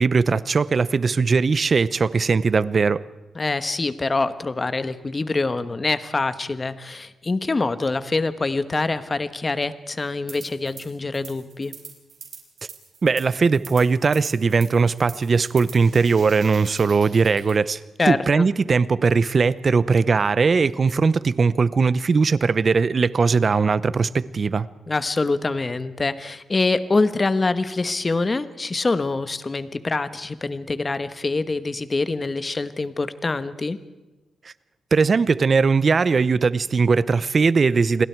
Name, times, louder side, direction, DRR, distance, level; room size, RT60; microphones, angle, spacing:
voice 1, 0.0-3.0 13.0-17.8 18.1-24.7 34.9-38.1, right 4 dB, 40° right, 0.7 m, -19 dB
voice 2, 3.3-11.7 18.0-18.5 24.9-33.8, left 3 dB, 25° left, 1.1 m, -25 dB
sound 1, 10.3-10.9 11.1-17.6, right 6 dB, 65° right, 4.9 m, -43 dB
29.0 x 22.0 x 4.6 m
wide cardioid pair, 120°, 0 cm